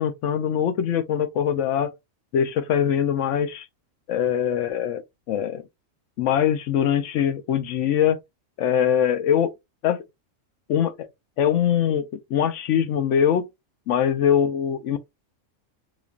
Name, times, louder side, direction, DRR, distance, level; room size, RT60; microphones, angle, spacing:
voice 1, 0.0-1.9 2.3-3.7 4.1-5.0 5.3-5.6 6.2-8.2 8.6-9.5 9.8-10.0 10.7-11.1 11.4-13.5 13.9-15.0, left 9 dB, 65° left, 0.9 m, -22 dB
5.0 x 2.4 x 2.3 m
omnidirectional pair, 1.5 m